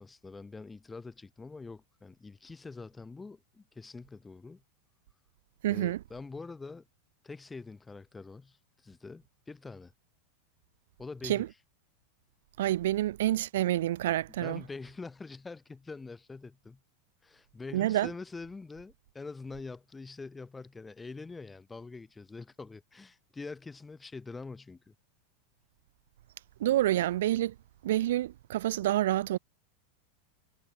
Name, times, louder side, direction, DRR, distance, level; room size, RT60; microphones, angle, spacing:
voice 1, 0.0-4.6 5.7-6.8 7.2-9.9 11.0-11.5 14.4-16.8 17.2-24.9, left 3 dB, 10° left, 1.6 m, -45 dB
voice 2, 5.6-6.0 11.2-11.5 12.6-14.6 17.7-18.1 26.6-27.6 27.8-29.4, right 14 dB, 80° right, 0.4 m, -28 dB
supercardioid pair, 125°, 0 cm